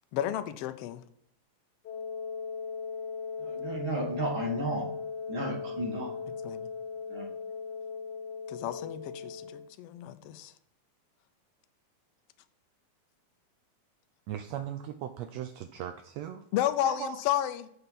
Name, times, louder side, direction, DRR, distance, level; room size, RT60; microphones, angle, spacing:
voice 1, 0.1-1.0 6.4-6.7 8.5-10.5 16.5-17.7, left 12 dB, 80° left, 1.4 m, -32 dB
Wind instrument woodwind instrument, 1.8-9.7, left 5 dB, 60° left, 1.0 m, -38 dB
voice 2, 3.4-4.9 5.3-6.1 7.1-7.3, right 1 dB, 45° right, 2.2 m, -33 dB
voice 3, 14.3-16.5 16.8-17.3, right 10 dB, 80° right, 1.5 m, -38 dB
6.9 x 5.5 x 5.8 m
omnidirectional pair, 3.5 m